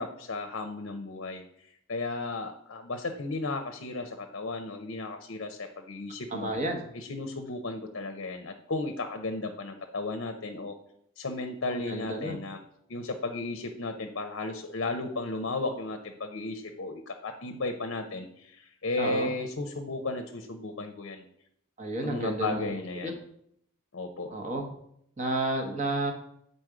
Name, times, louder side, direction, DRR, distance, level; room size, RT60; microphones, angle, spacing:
voice 1, 0.0-1.4 1.9-6.5 6.9-10.7 11.2-12.6 12.9-21.2 22.0-23.2 23.9-24.4, left 2 dB, 60° left, 5 dB, 0.6 m, -34 dB
voice 2, 6.3-6.8 11.7-12.4 19.0-19.3 21.8-22.7 23.0-23.1 24.3-24.8 25.2-26.1, right 2 dB, 35° right, 3 dB, 1.1 m, -31 dB
7.9 x 4.1 x 4.9 m, 0.71 s
head